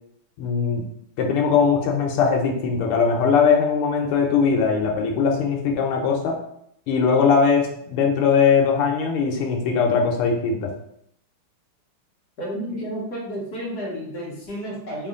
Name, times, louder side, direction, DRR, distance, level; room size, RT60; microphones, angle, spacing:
voice 1, 0.4-0.8 1.2-6.4 6.9-10.7, left 5 dB, 90° left, 1 dB, 1.5 m, -20 dB
voice 2, 12.4-15.1, equal, 60° left, -3 dB, 1.1 m, -31 dB
3.6 x 2.4 x 3.6 m, 0.71 s
omnidirectional pair, 2.4 m